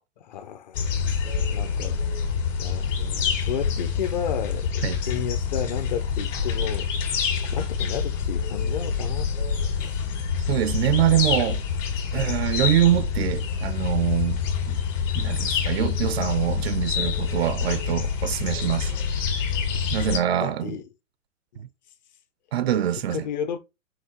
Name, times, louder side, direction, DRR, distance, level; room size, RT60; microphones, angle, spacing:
voice 1, 0.3-0.8 1.4-2.0 2.6-6.9 7.5-9.3 9.8-10.0 20.4-20.8 21.5-21.6 23.1-23.6, left 9 dB, 35° left, 0.5 m, -32 dB
sound 1, 0.7-20.2, left 6 dB, 70° left, 2.0 m, -26 dB
voice 2, 10.5-11.6 12.1-14.8 15.1-18.9 19.9-20.8 22.5-23.3, right 11 dB, 55° right, 0.5 m, -24 dB
5.8 x 2.7 x 2.9 m
hypercardioid pair, 155°, 39 cm